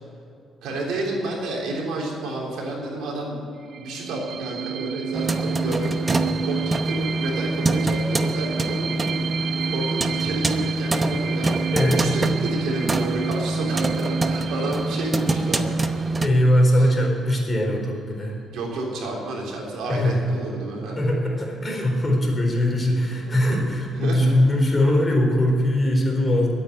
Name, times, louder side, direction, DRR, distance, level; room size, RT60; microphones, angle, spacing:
voice 1, 0.6-3.4 3.8-6.1 6.4-11.5 11.9-16.0 16.8-16.9 18.5-21.1 22.6-22.9 23.2-24.3, right 2 dB, 85° right, -1 dB, 3.4 m, -30 dB
sound 1, 3.6-17.0, right 9 dB, 60° right, 0.4 m, -32 dB
sound 2, 5.1-16.3, right 2 dB, 25° right, 0.9 m, -25 dB
voice 2, 11.7-12.0 16.2-18.4 19.9-20.2 21.0-26.5, left 1 dB, 20° left, 0 dB, 4.0 m, -21 dB
12.0 x 8.8 x 9.5 m, 2.6 s
cardioid pair, 90°, 0 cm